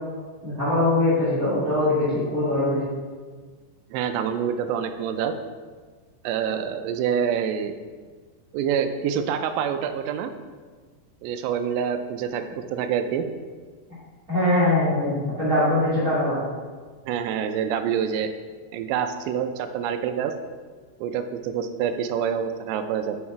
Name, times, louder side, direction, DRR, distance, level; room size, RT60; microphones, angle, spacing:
voice 1, 0.4-2.8 14.3-16.4, left 1 dB, 35° right, -9 dB, 1.4 m, -22 dB
voice 2, 3.9-5.3 6.2-7.8 8.5-10.3 11.2-12.4 12.7-13.2 17.1-18.3 18.7-20.3 21.0-23.2, right 8 dB, 85° right, 8 dB, 2.7 m, -26 dB
7.1 x 5.2 x 4.8 m, 1.5 s
omnidirectional pair, 5.0 m